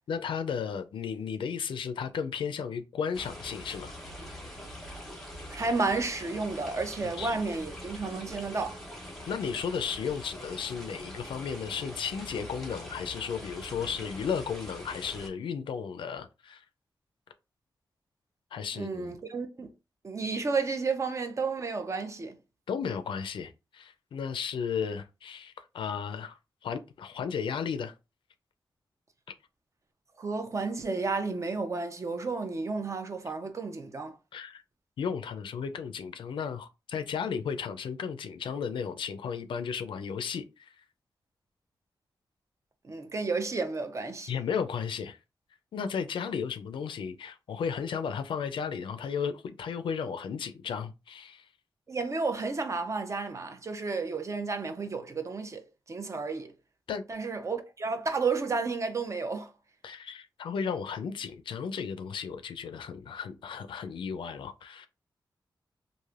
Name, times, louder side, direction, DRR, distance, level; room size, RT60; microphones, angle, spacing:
voice 1, 0.1-3.9 7.2-7.4 9.3-16.6 18.5-19.2 22.7-27.9 34.3-34.6 35.0-40.7 44.3-45.2 45.7-51.5 56.9-57.0 59.8-64.9, left 6 dB, 90° left, 0.4 m, -34 dB
sound 1, 3.1-15.3, equal, ahead, 1.0 m, -43 dB
voice 2, 5.5-8.8 18.8-19.7 20.0-22.4 30.2-34.2 42.9-44.3 51.9-56.5 57.1-59.5, right 4 dB, 35° right, 0.6 m, -32 dB
3.2 x 2.5 x 2.4 m
wide cardioid pair, 95°, 8 cm